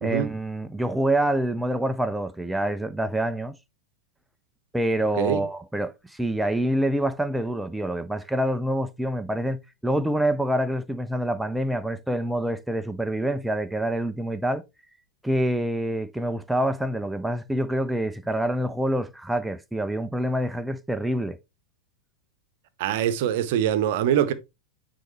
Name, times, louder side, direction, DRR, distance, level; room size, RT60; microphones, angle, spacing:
voice 1, 0.0-3.6 4.7-14.6 15.2-21.4, right 1 dB, 5° right, 0.5 m, -26 dB
voice 2, 22.8-24.3, right 10 dB, 50° right, 0.8 m, -23 dB
9.6 x 4.0 x 3.2 m
figure-of-eight pair, 90°, 0 cm